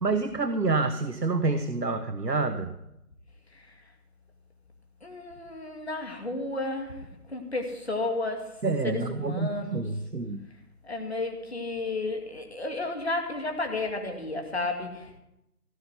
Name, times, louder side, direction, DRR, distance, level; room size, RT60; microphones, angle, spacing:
voice 1, 0.0-2.7 8.6-10.5, right 3 dB, 90° right, 9 dB, 1.1 m, -28 dB
voice 2, 5.0-8.5 8.8-9.8 10.8-15.2, left 2 dB, 40° left, 3 dB, 2.3 m, -32 dB
16.5 x 5.7 x 10.0 m, 0.84 s
figure-of-eight pair, 170°, 47 cm